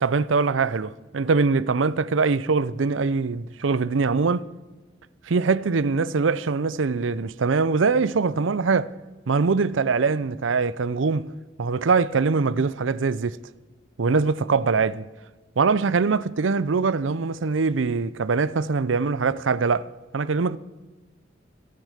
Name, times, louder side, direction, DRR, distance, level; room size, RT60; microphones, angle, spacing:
voice 1, 0.0-4.5 5.3-8.9 9.3-11.3 11.6-13.4 14.0-15.0 15.6-20.6, right 4 dB, 85° right, 0.6 m, -23 dB
26.5 x 9.4 x 5.1 m
head